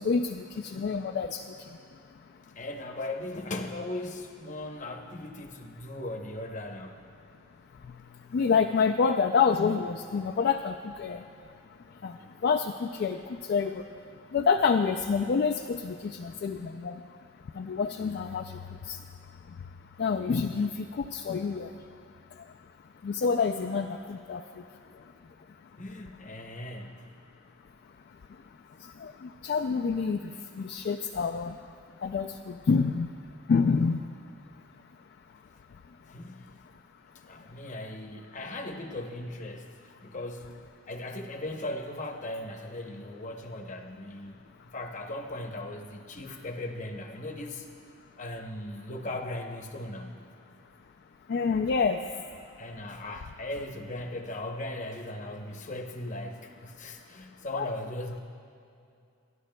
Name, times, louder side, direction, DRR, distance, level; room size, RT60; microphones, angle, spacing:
voice 1, 0.0-1.4 8.3-11.2 12.0-12.1 12.4-13.9 14.3-17.0 17.5-18.6 18.9-19.0 20.0-21.7 23.0-24.4 29.0-30.2 30.6-31.5 32.0-33.1 33.5-34.0 51.3-52.0 57.5-57.7, left 5 dB, 50° left, 4 dB, 0.3 m, -27 dB
voice 2, 2.6-7.0 25.8-27.1 36.1-36.5 37.3-39.7 40.0-40.6 40.9-44.4 44.6-47.7 48.2-50.2 52.6-58.2, left 1 dB, 35° left, 3 dB, 0.8 m, -38 dB
25.5 x 11.0 x 2.2 m, 2.5 s
head